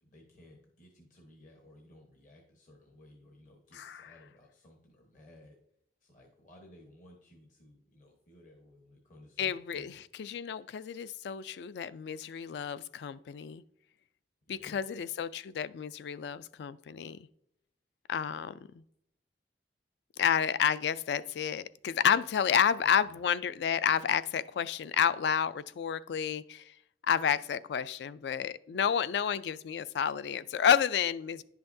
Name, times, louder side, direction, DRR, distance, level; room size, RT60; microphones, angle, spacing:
voice 1, 0.0-5.6 6.0-10.0 14.5-14.8 23.0-23.2, left 1 dB, 45° left, 1 dB, 1.1 m, -57 dB
voice 2, 3.7-4.1 9.4-13.6 14.5-17.2 18.1-18.8 20.2-26.7 27.0-31.4, left 8 dB, 65° left, 16 dB, 0.3 m, -30 dB
10.5 x 5.7 x 2.6 m, 0.74 s
head